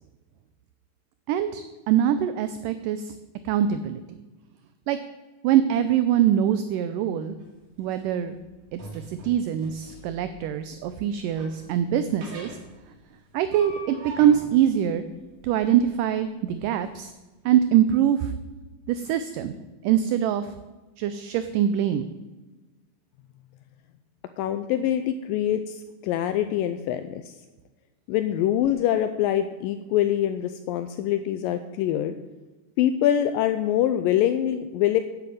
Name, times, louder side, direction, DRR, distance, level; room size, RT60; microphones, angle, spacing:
voice 1, 1.3-3.1 3.5-4.2 4.9-5.0 5.4-7.4 7.8-8.4 8.7-8.8 9.1-12.6 13.3-15.0 15.4-17.1 17.5-18.3 18.9-19.5 19.8-20.5 21.0-22.1, right 10 dB, 80° right, 11 dB, 2.0 m, -23 dB
sound 1, 7.4-16.9, right 2 dB, 50° right, 3.1 m, -45 dB
voice 2, 24.4-27.3 28.1-32.1 32.8-35.0, left 11 dB, 80° left, 10 dB, 2.1 m, -24 dB
10.0 x 8.6 x 7.8 m, 1.2 s
omnidirectional pair, 4.3 m